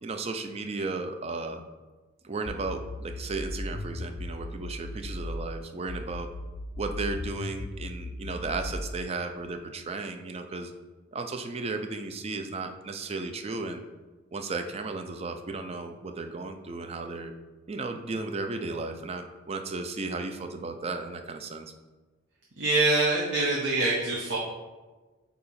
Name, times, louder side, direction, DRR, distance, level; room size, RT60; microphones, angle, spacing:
voice 1, 0.0-1.6 2.2-6.3 6.8-10.7 11.1-13.8 14.3-17.3 17.7-21.7, right 3 dB, 30° right, 6 dB, 0.4 m, -34 dB
sound 1, 2.5-5.5 5.9-8.9, left 2 dB, 40° left, 0.6 m, -37 dB
voice 2, 22.6-24.4, right 2 dB, 60° right, -4 dB, 0.8 m, -25 dB
8.3 x 2.9 x 4.2 m, 1.3 s
head